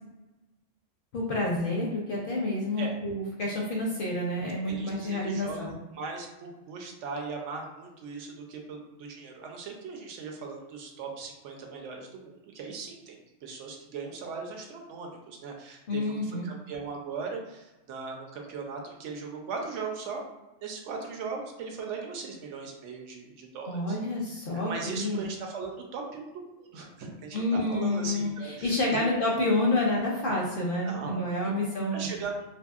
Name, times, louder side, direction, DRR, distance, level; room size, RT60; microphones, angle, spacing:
voice 1, 1.1-5.7 15.9-16.5 23.7-25.2 27.3-32.1, left 1 dB, 60° left, -3 dB, 0.6 m, -29 dB
voice 2, 4.7-20.2 20.6-24.0 24.7-29.2 30.8-31.5 31.9-32.4, right 4 dB, 75° right, 1 dB, 0.9 m, -39 dB
2.7 x 2.6 x 2.4 m, 1.1 s
omnidirectional pair, 1.3 m